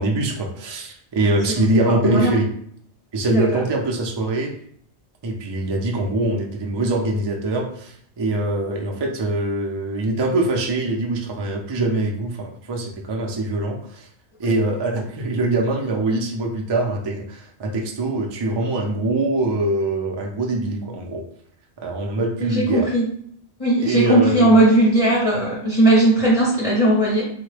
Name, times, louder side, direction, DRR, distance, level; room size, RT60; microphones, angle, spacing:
voice 1, 0.0-2.5 3.1-4.6 5.2-14.1 14.4-21.2 21.8-22.9 23.8-24.6, right 2 dB, 40° right, 1 dB, 0.3 m, -23 dB
voice 2, 3.3-3.6 14.4-14.5 22.4-23.1 23.6-27.3, right 1 dB, 40° left, -6 dB, 0.6 m, -18 dB
3.6 x 2.1 x 3.2 m, 0.64 s
omnidirectional pair, 1.1 m